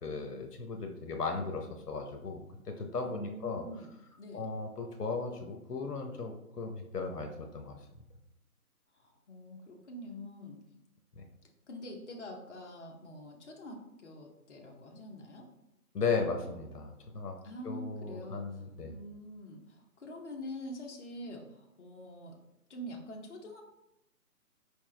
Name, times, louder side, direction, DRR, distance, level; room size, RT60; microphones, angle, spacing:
voice 1, 0.0-3.6 4.3-7.7 11.2-11.3 15.9-17.3 17.6-18.9, left 4 dB, 80° left, 4 dB, 0.9 m, -36 dB
voice 2, 3.0-3.9 4.2-4.5 8.9-10.6 11.7-15.5 17.4-18.6 18.9-22.4 22.7-23.6, left 1 dB, 50° left, 1 dB, 0.9 m, -45 dB
4.7 x 3.4 x 3.2 m, 0.84 s
figure-of-eight pair, 155°, 46 cm